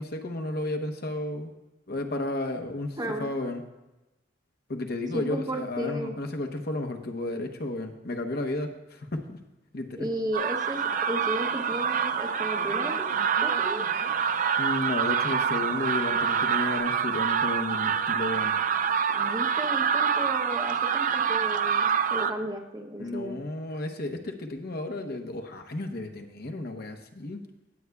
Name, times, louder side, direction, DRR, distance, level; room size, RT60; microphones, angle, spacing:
voice 1, 0.0-1.5 1.9-3.6 4.7-9.4 9.7-10.1 14.6-18.5 23.0-27.4, left 2 dB, 55° left, 5 dB, 1.0 m, -33 dB
voice 2, 3.0-3.3 5.1-6.2 10.0-13.1 13.4-13.8 19.1-23.4, equal, 20° right, 3 dB, 0.8 m, -34 dB
sound 1, 10.3-22.3, right 7 dB, 45° right, 0.5 m, -26 dB
sound 2, 10.7-16.8, right 1 dB, 80° right, 4.1 m, -41 dB
19.0 x 7.9 x 2.3 m, 1.0 s
head